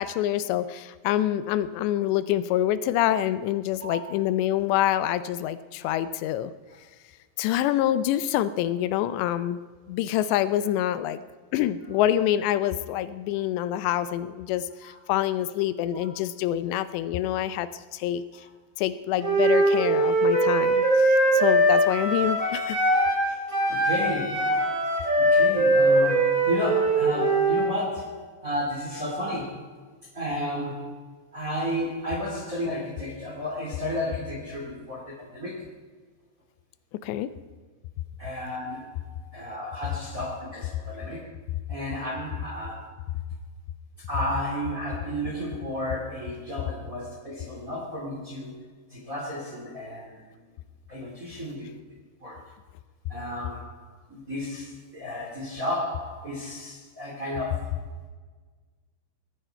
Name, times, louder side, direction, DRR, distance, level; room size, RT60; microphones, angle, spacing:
voice 1, 0.0-6.5 7.4-9.6 9.9-11.2 11.5-18.2 18.8-22.8 37.0-37.3, left 12 dB, 85° left, 14 dB, 2.8 m, -26 dB
voice 2, 3.8-4.1 14.8-15.0 18.3-18.4 21.3-21.4 23.7-24.7 25.2-29.8 30.1-31.0 31.3-35.7 38.2-41.3 41.7-42.9 44.1-48.6 48.9-50.2 50.9-51.8 52.2-52.5 53.1-57.9, equal, 30° right, -1 dB, 1.8 m, -33 dB
Wind instrument woodwind instrument, 19.2-23.2 23.5-27.7, right 1 dB, 10° right, 3.3 m, -21 dB
19.0 x 14.5 x 4.4 m, 1.4 s
omnidirectional pair, 5.0 m